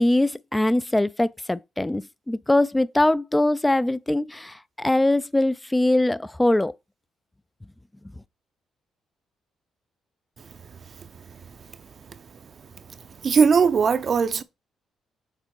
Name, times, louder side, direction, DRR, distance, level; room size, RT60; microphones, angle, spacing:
voice 1, 0.0-6.7, left 1 dB, 10° left, 0.4 m, -22 dB
voice 2, 13.2-14.4, right 5 dB, 45° right, 0.5 m, -19 dB
6.6 x 3.6 x 4.6 m
cardioid pair, 90°, 0 cm